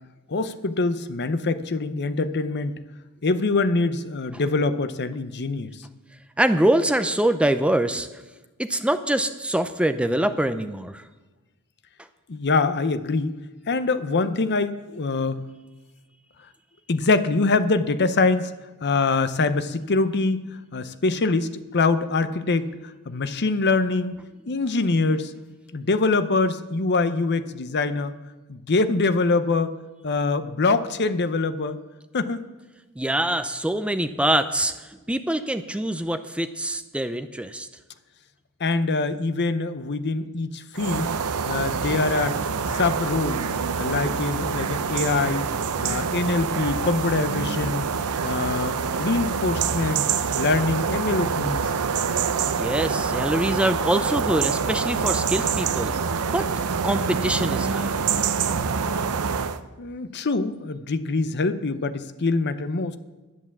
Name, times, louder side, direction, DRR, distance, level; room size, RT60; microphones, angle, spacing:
voice 1, 0.3-2.8 3.2-5.7 12.3-13.3 13.7-15.4 16.9-18.5 18.8-24.2 24.5-25.3 25.7-28.2 28.5-29.7 30.0-31.8 32.1-32.4 38.6-41.1 41.4-42.4 42.7-43.4 43.7-45.5 45.8-47.9 48.2-50.0 50.4-51.7 59.8-63.0, left 3 dB, 50° left, 12 dB, 0.7 m, -24 dB
voice 2, 6.4-8.2 8.6-11.0 33.0-37.7 52.6-55.9 56.3-56.5 56.8-58.0, right 1 dB, 5° right, 10 dB, 0.5 m, -24 dB
sound 1, 40.7-59.6, right 6 dB, 85° right, 0.6 m, -26 dB
11.0 x 10.5 x 7.2 m, 1.2 s
head